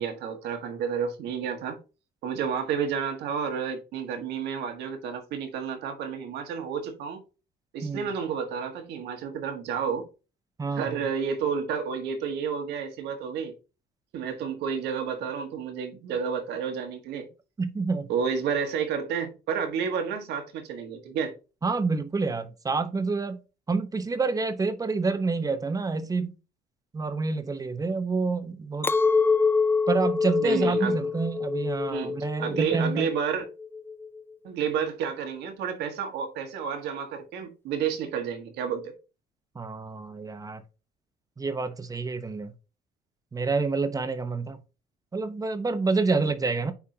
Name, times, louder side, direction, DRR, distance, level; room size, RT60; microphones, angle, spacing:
voice 1, 0.0-1.8 2.2-7.2 7.7-10.1 10.7-13.6 14.1-17.3 18.1-21.4 30.4-31.0 31.9-33.5 34.4-38.9, right 7 dB, 80° right, 1.6 m, -30 dB
voice 2, 10.6-11.0 17.6-18.1 21.6-23.4 23.7-26.3 26.9-28.9 29.9-33.1 39.5-40.6 41.4-42.5 43.3-44.6 45.1-46.7, right 4 dB, 20° right, 0.9 m, -28 dB
Chink clink, 28.8-34.2, left 4 dB, 15° left, 0.3 m, -26 dB
9.7 x 3.6 x 2.8 m
cardioid pair, 110°, 17 cm